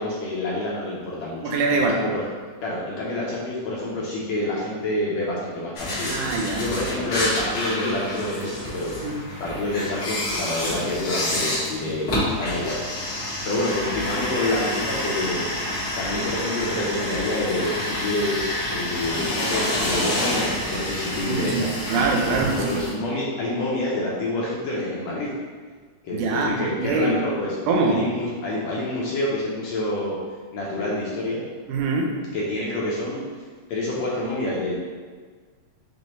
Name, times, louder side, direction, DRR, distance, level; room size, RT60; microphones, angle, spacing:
voice 1, 0.0-1.4 1.7-2.2 2.6-8.9 9.4-12.8 13.2-15.5 16.0-21.7 22.6-25.3 26.0-27.6 27.9-30.2 30.5-31.5 32.3-33.2 33.7-34.8, left 1 dB, 75° left, -5 dB, 1.6 m, -27 dB
voice 2, 1.4-2.0 6.1-6.7 9.0-9.1 21.3-22.8 26.1-27.2 27.7-28.1 31.7-32.1, right 3 dB, 85° right, 1 dB, 2.1 m, -23 dB
sound 1, 5.8-22.9, left 1 dB, 50° left, 1.9 m, -28 dB
6.2 x 2.7 x 2.9 m, 1.5 s
omnidirectional pair, 3.5 m